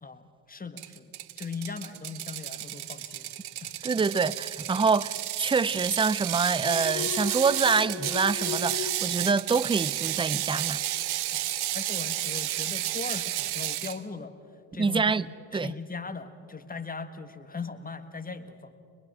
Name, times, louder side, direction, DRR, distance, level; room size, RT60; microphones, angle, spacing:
voice 1, 0.0-3.3 3.6-3.9 11.3-14.3 14.7-18.7, left 4 dB, 20° left, 1.5 m, -39 dB
Ratchet pawl, 0.8-14.0, right 14 dB, 60° right, 0.9 m, -32 dB
voice 2, 3.8-10.8 14.8-15.3 15.5-15.7, right 5 dB, 10° right, 0.5 m, -26 dB
Alarm, 6.6-10.0 10.3-10.7, left 10 dB, 65° left, 1.2 m, -37 dB
24.0 x 21.5 x 6.3 m
supercardioid pair, 70°, 45 cm